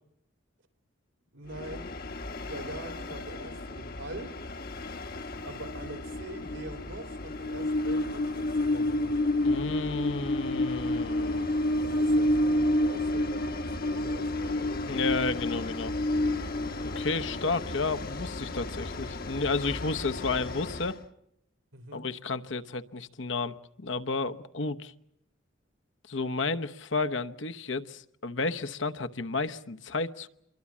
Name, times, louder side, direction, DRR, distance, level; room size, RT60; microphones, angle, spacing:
voice 1, 1.3-1.9 2.5-4.3 5.4-9.2 11.8-15.3 21.7-22.0, right 2 dB, 80° right, 7 dB, 3.1 m, -44 dB
Train, 1.5-21.0, left 1 dB, 50° left, 1.1 m, -30 dB
voice 2, 9.4-11.5 14.9-15.9 16.8-21.0 21.9-24.9 26.1-30.3, left 3 dB, 70° left, 9 dB, 1.0 m, -32 dB
27.0 x 22.5 x 7.3 m, 0.78 s
head